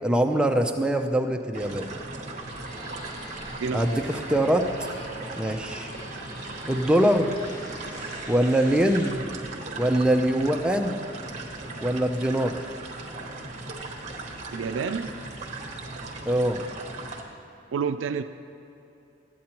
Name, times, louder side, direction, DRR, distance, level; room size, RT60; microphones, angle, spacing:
voice 1, 0.0-1.9 3.7-4.6 5.3-5.9 6.7-7.3 8.3-9.2 9.8-11.1 11.8-12.5 16.3-16.6, right 1 dB, 5° right, 4 dB, 0.5 m, -23 dB
sound 1, 1.5-17.2, right 2 dB, 40° right, 0.9 m, -38 dB
sound 2, 2.5-9.1, equal, 60° left, 2.1 m, -44 dB
voice 2, 3.6-4.2 14.5-15.1 17.7-18.2, right 6 dB, 85° right, 8 dB, 0.4 m, -29 dB
13.5 x 8.5 x 2.9 m, 2.8 s
head